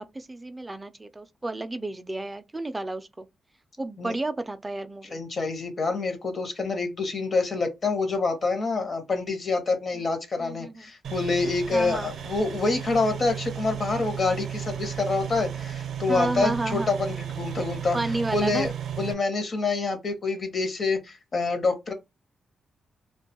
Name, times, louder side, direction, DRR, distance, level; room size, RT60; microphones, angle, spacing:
voice 1, 0.0-3.3 3.8-5.2 10.4-10.8 11.7-12.1 16.1-16.9 17.9-18.7, right 2 dB, 15° right, 0.3 m, -31 dB
voice 2, 5.0-18.0 18.3-18.7 19.0-21.9, left 3 dB, 40° left, 0.8 m, -27 dB
sound 1, 11.0-19.1, right 9 dB, 70° right, 0.5 m, -34 dB
2.5 x 2.2 x 2.8 m
cardioid pair, 120°, 0 cm